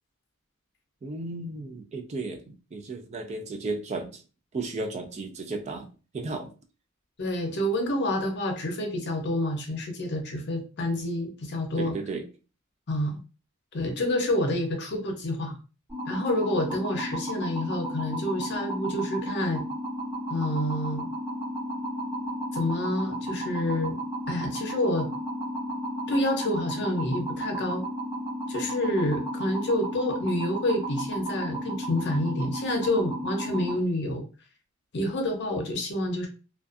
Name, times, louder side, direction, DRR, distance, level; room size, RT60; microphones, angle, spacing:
voice 1, 1.0-4.2 4.5-5.9 6.1-6.5 11.7-12.2, right 3 dB, 30° right, 0.3 m, -34 dB
voice 2, 7.2-11.9 12.9-13.2 13.7-15.6 16.1-19.6 20.3-21.1 22.5-24.0 24.3-25.1 26.1-27.8 28.5-34.2 34.9-36.3, left 1 dB, 55° left, 0.6 m, -28 dB
sound 1, 15.9-33.7, equal, 15° right, 1.2 m, -33 dB
2.5 x 2.3 x 2.4 m
head